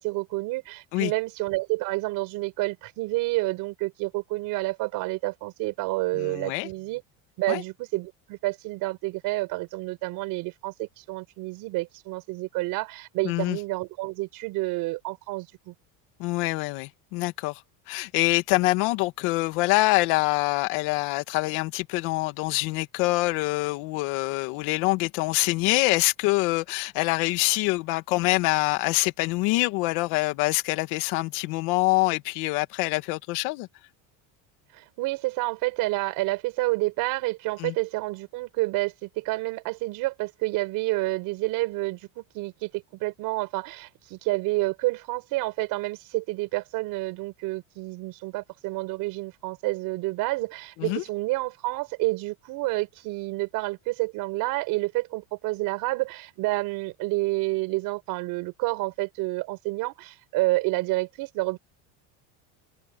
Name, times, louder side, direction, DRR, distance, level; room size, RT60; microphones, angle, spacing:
voice 1, 0.0-7.0 7.4-15.7 34.7-61.6, right 21 dB, 55° right, 4.4 m, -29 dB
voice 2, 6.1-6.7 7.5-7.6 13.2-13.6 16.2-17.6 17.9-33.7 37.6-37.7 50.8-51.0, left 22 dB, 70° left, 2.0 m, -25 dB
cardioid pair, 160°, 40 cm